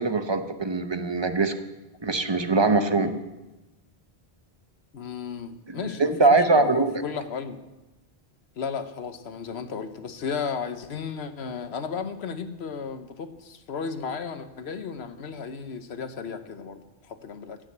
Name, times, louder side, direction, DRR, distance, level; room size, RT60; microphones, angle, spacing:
voice 1, 0.0-1.5 2.0-3.2 5.7-6.9, right 3 dB, 30° right, 8 dB, 0.8 m, -22 dB
voice 2, 4.9-7.6 8.6-17.6, left 6 dB, 85° left, 9 dB, 1.2 m, -34 dB
15.0 x 6.4 x 8.0 m, 1.1 s
omnidirectional pair, 1.1 m